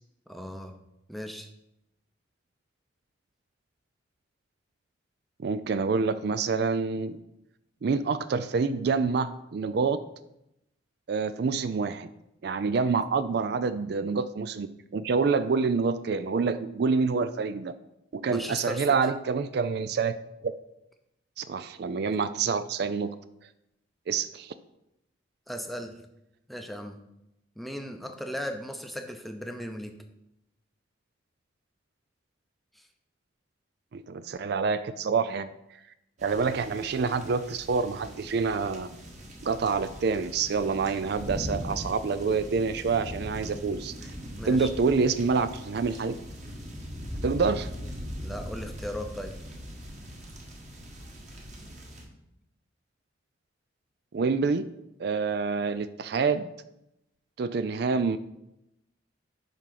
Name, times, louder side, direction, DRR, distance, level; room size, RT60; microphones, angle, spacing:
voice 1, 0.3-0.8 1.1-1.5 18.3-19.0 25.5-26.0 26.5-27.0 27.6-30.0 32.7-32.9 44.4-44.7 48.2-49.4, equal, ahead, 5 dB, 0.6 m, -37 dB
voice 2, 5.4-7.2 7.8-10.0 11.1-12.1 12.4-14.7 14.9-17.7 18.1-20.2 20.4-20.5 21.4-23.1 24.1-24.5 33.9-35.5 36.2-38.9 39.4-44.1 44.4-46.2 47.2-47.7 54.1-54.7 55.0-56.5 57.4-58.2, right 5 dB, 55° right, 13 dB, 0.4 m, -27 dB
sound 1, 36.2-52.0, equal, 40° right, 1.6 m, -40 dB
10.5 x 3.7 x 5.8 m, 0.86 s
head